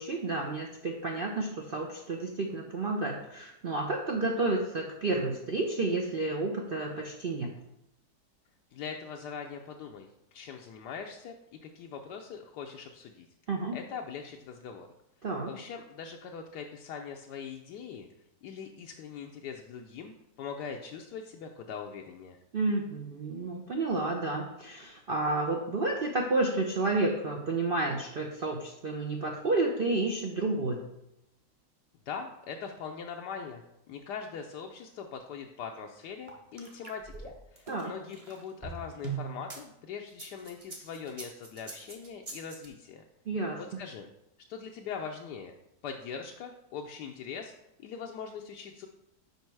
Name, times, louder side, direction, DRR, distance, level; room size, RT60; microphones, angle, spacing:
voice 1, 0.0-7.5 13.5-13.8 15.2-15.5 22.5-30.9 37.7-37.9 43.3-43.6, right 2 dB, 65° right, 1 dB, 0.5 m, -31 dB
voice 2, 8.7-11.4 11.6-13.3 13.7-14.9 15.5-18.1 18.4-22.4 32.1-43.0 43.6-44.1 44.5-45.5 45.8-47.5 47.8-48.9, left 6 dB, 80° left, 2 dB, 1.2 m, -41 dB
sound 1, 36.3-39.6 40.1-42.7, right 5 dB, 25° right, 0.8 m, -41 dB
5.4 x 5.1 x 4.5 m, 0.85 s
omnidirectional pair, 1.8 m